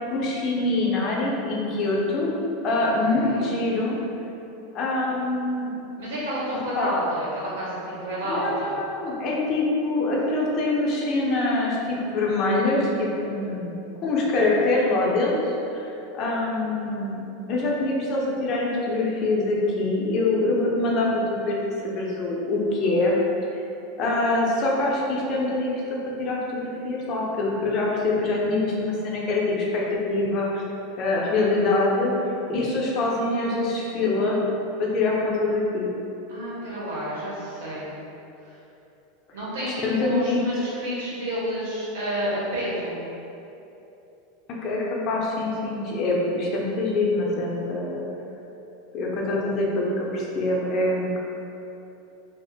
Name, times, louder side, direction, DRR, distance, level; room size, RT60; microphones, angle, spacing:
voice 1, 0.1-2.3 2.6-4.0 4.7-5.7 6.8-6.9 8.3-17.2 17.5-23.1 24.0-30.6 31.0-32.1 32.5-34.4 34.8-35.9 39.7-40.4 44.6-48.1 48.9-51.2, left 2 dB, 30° left, -3 dB, 0.5 m, -24 dB
voice 2, 3.0-3.5 6.0-8.7 36.3-37.9 38.4-38.6 39.3-43.0, equal, 85° right, -8 dB, 1.3 m, -30 dB
3.4 x 2.1 x 4.2 m, 2.9 s
supercardioid pair, 180°, 0 cm